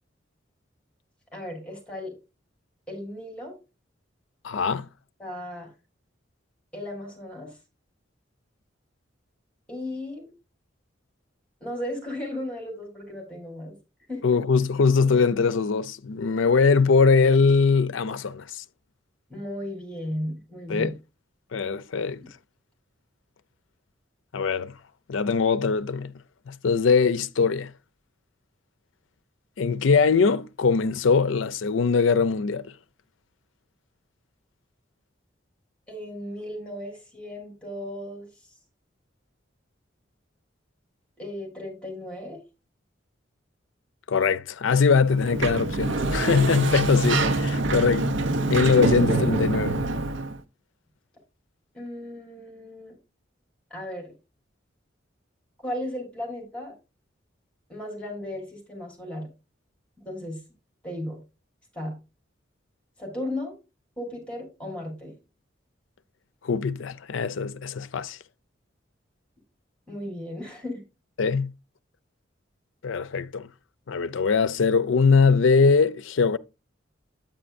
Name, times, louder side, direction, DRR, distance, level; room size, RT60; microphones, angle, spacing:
voice 1, 1.3-2.1 2.9-3.6 5.2-5.7 6.7-7.5 9.7-10.3 11.6-13.8 14.1-14.2 19.3-20.9 35.9-38.3 41.2-42.4 51.7-53.0 53.7-54.1 55.6-56.7 57.7-59.3 60.0-60.4 60.8-61.2 61.7-62.0 63.0-63.6 64.0-65.2 69.9-70.8, left 1 dB, 5° left, 3.5 m, -35 dB
voice 2, 4.4-4.9 14.2-18.6 20.7-20.9 21.5-22.2 24.3-24.7 25.1-26.1 26.5-27.7 29.6-32.6 44.1-48.2 48.5-49.8 66.4-68.2 71.2-71.5 72.8-73.5 73.9-76.4, left 5 dB, 85° left, 0.5 m, -22 dB
Sliding door, 45.0-50.4, right 2 dB, 75° right, 0.7 m, -25 dB
8.8 x 8.7 x 2.5 m
head